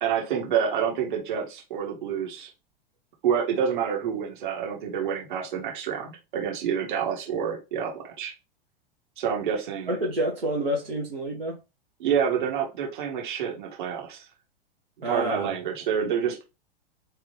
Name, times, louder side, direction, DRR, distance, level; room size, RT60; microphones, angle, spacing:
voice 1, 0.0-2.5 3.2-8.3 9.2-9.9 12.0-14.2 15.1-16.4, right 8 dB, 55° right, 1.8 m, -28 dB
voice 2, 9.9-11.6 15.0-15.5, right 1 dB, 75° right, 1.3 m, -28 dB
3.4 x 3.3 x 3.1 m
figure-of-eight pair, 95°, 29 cm